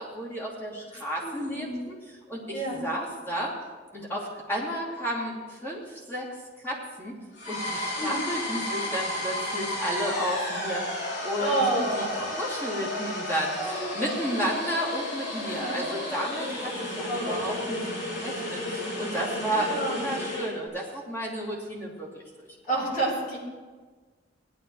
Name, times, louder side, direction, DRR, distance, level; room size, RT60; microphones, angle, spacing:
voice 1, 0.0-2.0 2.3-3.5 3.9-6.3 6.6-7.1 7.5-22.8, equal, 10° left, -6 dB, 2.9 m, -32 dB
voice 2, 1.2-1.8 2.5-2.9 8.0-8.3 11.4-12.4 13.6-14.5 15.5-15.8 17.1-17.6 19.5-20.1 22.7-23.4, right 2 dB, 45° left, -4 dB, 4.2 m, -30 dB
sound 1, 7.4-20.5, left 1 dB, 70° left, 3.3 m, -33 dB
17.0 x 11.5 x 3.2 m, 1.4 s
head